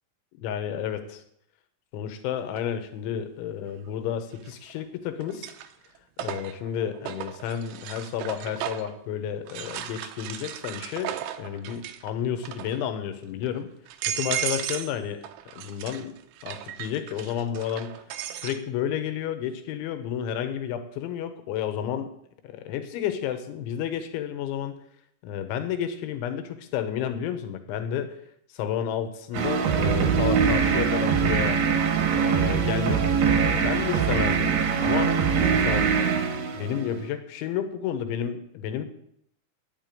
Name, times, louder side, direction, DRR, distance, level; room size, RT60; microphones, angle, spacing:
voice 1, 0.4-1.2 1.9-5.5 6.2-13.7 14.1-15.2 15.6-16.1 16.4-17.9 18.4-22.1 22.4-24.8 25.2-28.1 28.5-31.6 32.1-35.2 35.5-35.9 36.5-38.8, left 9 dB, 75° left, 9 dB, 3.2 m, -31 dB
sound 1, 2.6-2.7 4.4-4.8 5.2-9.0 9.5-12.1 12.4-12.9 13.4-13.5 13.9-14.9 15.2-18.6, right 11 dB, 85° right, 2.3 m, -35 dB
sound 2, 29.3-37.1, right 6 dB, 65° right, 2.4 m, -23 dB
10.0 x 6.8 x 9.1 m, 0.71 s
omnidirectional pair, 5.8 m